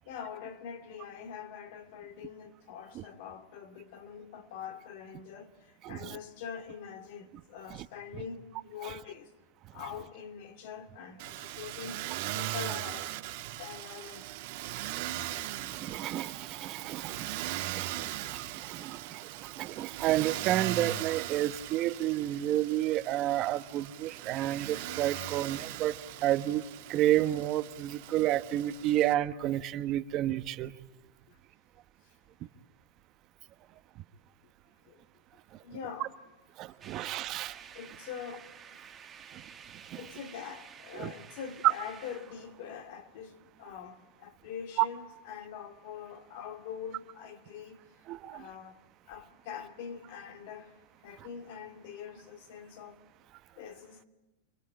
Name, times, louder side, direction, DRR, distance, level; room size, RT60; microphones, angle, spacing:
voice 1, 0.1-9.3 9.7-12.0 12.3-13.2 13.5-14.4 31.3-31.4 34.8-35.0 35.6-36.1 37.7-38.8 40.0-47.8 48.3-48.8 49.1-53.0 53.6-54.1, left 7 dB, 60° left, 2.6 m, -44 dB
voice 2, 5.8-6.2 15.6-25.9 26.2-26.6 26.9-30.7 36.6-37.6 39.3-39.4 40.9-41.1 48.1-48.5, right 13 dB, 40° right, 1.1 m, -31 dB
Motor vehicle (road), 11.2-29.1, right 15 dB, 60° right, 1.8 m, -39 dB
sound 1, 36.8-43.5, right 7 dB, 20° right, 1.7 m, -51 dB
28.0 x 22.5 x 8.9 m
supercardioid pair, 135°, 0 cm